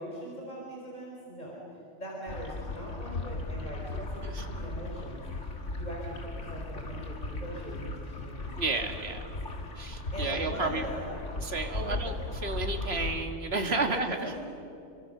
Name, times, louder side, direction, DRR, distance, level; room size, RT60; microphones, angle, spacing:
voice 1, 0.0-1.6 1.9-9.1 10.1-11.2 11.7-12.0 13.8-14.4, equal, 40° left, -3 dB, 4.7 m, -41 dB
sound 1, 2.3-13.2, left 2 dB, 85° left, 2.5 m, -37 dB
voice 2, 3.9-4.4 8.6-9.2 9.8-10.8 11.4-12.2 12.4-14.3, right 3 dB, 60° right, 5 dB, 2.2 m, -32 dB
29.0 x 24.0 x 6.7 m, 2.6 s
omnidirectional pair, 1.2 m